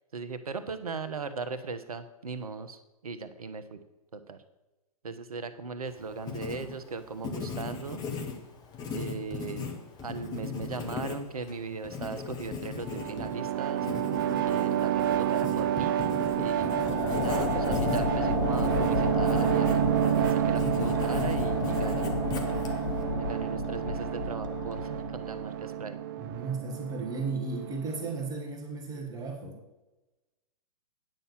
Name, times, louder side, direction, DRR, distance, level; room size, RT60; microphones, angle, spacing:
voice 1, 0.1-3.8 4.1-4.4 5.0-8.0 8.9-9.8 10.0-13.9 14.4-16.0 16.4-16.8 17.1-19.8 20.2-22.1 23.1-26.0, right 4 dB, 65° right, 11 dB, 1.0 m, -38 dB
Writing, 5.9-23.0, left 5 dB, 20° left, 1.3 m, -38 dB
sound 1, 12.8-28.3, right 11 dB, 35° right, 0.4 m, -29 dB
sound 2, 16.3-25.6, left 6 dB, 55° left, 1.0 m, -33 dB
voice 2, 26.2-29.6, right 4 dB, 20° right, 1 dB, 1.6 m, -35 dB
9.1 x 5.5 x 7.5 m, 1.1 s
figure-of-eight pair, 115°, 20 cm